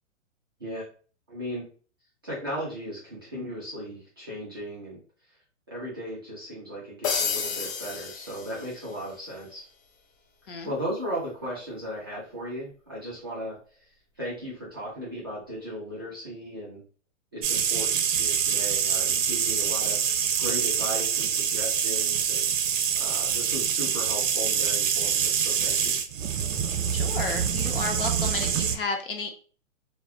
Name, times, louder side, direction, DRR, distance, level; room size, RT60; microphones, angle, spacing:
voice 1, 1.3-1.7 2.2-5.0 5.7-9.7 10.6-13.6 14.2-16.8 17.3-20.0 20.4-22.5 23.0-25.9, equal, 20° right, -7 dB, 0.4 m, -36 dB
sound 1, 7.0-9.1, left 6 dB, 85° left, 0.7 m, -31 dB
sound 2, 17.4-28.8, right 8 dB, 80° right, 0.5 m, -25 dB
voice 2, 26.9-29.3, left 4 dB, 45° left, 4 dB, 0.5 m, -32 dB
2.4 x 2.0 x 2.6 m, 0.40 s
hypercardioid pair, 165°, 38 cm